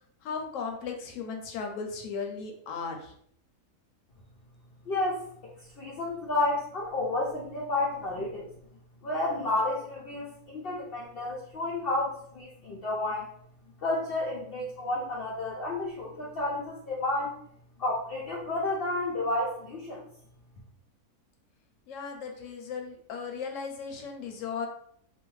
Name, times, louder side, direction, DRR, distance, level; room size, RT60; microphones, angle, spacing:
voice 1, 0.2-3.1 21.9-24.7, left 5 dB, 70° left, 3 dB, 0.8 m, -36 dB
voice 2, 4.9-5.2 5.8-8.5 9.0-13.3 13.8-17.4 17.8-20.0, left 2 dB, 85° left, -4 dB, 0.5 m, -31 dB
2.6 x 2.1 x 3.0 m, 0.66 s
omnidirectional pair, 1.6 m